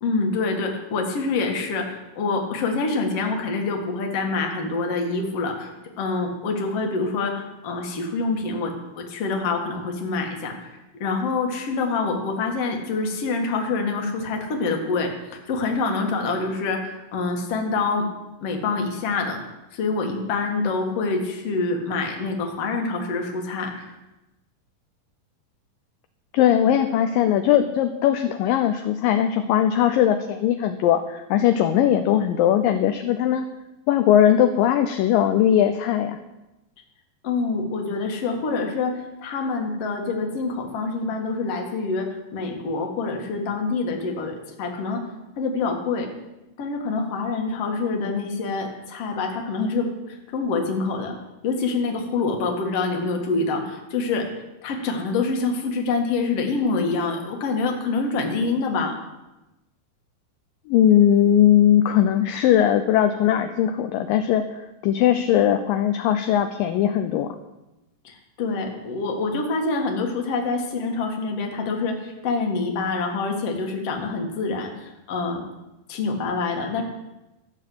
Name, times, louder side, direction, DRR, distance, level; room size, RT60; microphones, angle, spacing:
voice 1, 0.0-5.7 6.0-10.7 11.0-18.1 18.4-19.4 19.7-24.0 37.2-38.9 39.2-45.0 45.4-46.1 46.6-51.2 51.4-54.2 54.6-58.9 68.0-75.4 75.9-76.8, left 3 dB, 50° left, 2 dB, 2.4 m, -26 dB
voice 2, 26.3-33.5 33.9-36.2 60.7-67.4, left 10 dB, 75° left, 8 dB, 2.2 m, -19 dB
14.0 x 7.1 x 8.4 m, 0.99 s
omnidirectional pair, 4.3 m